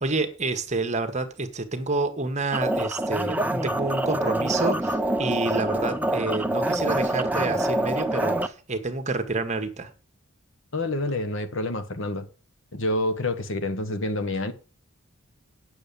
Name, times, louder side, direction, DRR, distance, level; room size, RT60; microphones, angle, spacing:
voice 1, 0.0-9.9, right 3 dB, 35° right, 1.4 m, -28 dB
sound 1, 2.5-8.5, right 1 dB, 10° right, 0.6 m, -26 dB
voice 2, 10.7-12.3 12.7-14.5, left 1 dB, 65° left, 1.3 m, -28 dB
9.0 x 6.8 x 7.0 m
head